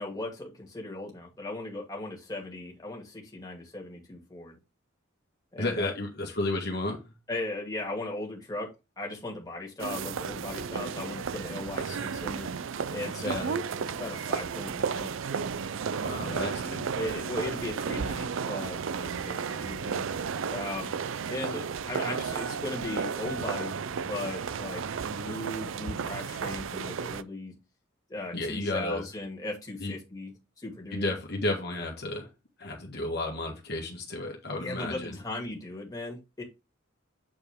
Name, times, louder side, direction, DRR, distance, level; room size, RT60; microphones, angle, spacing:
voice 1, 0.0-4.5 5.5-5.9 7.3-8.7 9.0-12.5 12.9-15.1 16.3-16.5 16.9-20.1 20.5-20.9 21.3-27.5 28.1-31.2 34.6-36.4, left 2 dB, 20° left, 2.1 m, -37 dB
voice 2, 5.6-7.0 13.2-13.5 16.0-16.8 28.3-29.0 29.8-29.9 30.9-32.3 32.6-35.2, left 2 dB, 55° left, 1.5 m, -32 dB
sound 1, 9.8-27.2, right 6 dB, 80° right, 0.4 m, -33 dB
7.8 x 4.3 x 3.5 m
head